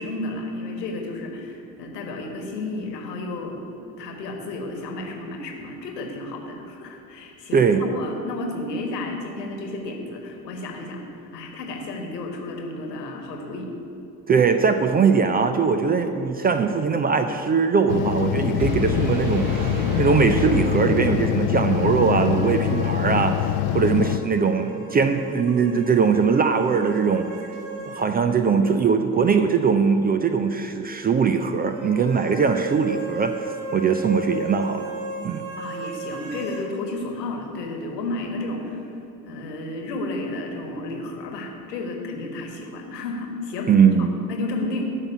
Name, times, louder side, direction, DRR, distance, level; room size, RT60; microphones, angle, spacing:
voice 1, 0.0-3.6 4.0-11.0 11.3-13.7 35.6-38.8 39.2-43.7 44.0-44.8, left 2 dB, 75° left, 3 dB, 1.5 m, -32 dB
voice 2, 7.5-7.8 14.3-19.5 20.0-23.4 23.7-27.3 27.9-34.9 35.2-35.5 43.7-44.1, right 5 dB, 20° right, 7 dB, 0.4 m, -21 dB
sound 1, 17.9-24.2, left 12 dB, 50° left, 0.6 m, -24 dB
sound 2, 18.6-21.6, right 3 dB, 40° right, 1.7 m, -30 dB
sound 3, 21.6-28.1 28.4-28.5 31.6-36.7, right 3 dB, 55° right, 2.0 m, -36 dB
9.0 x 5.8 x 8.1 m, 2.8 s
figure-of-eight pair, 60°, 49 cm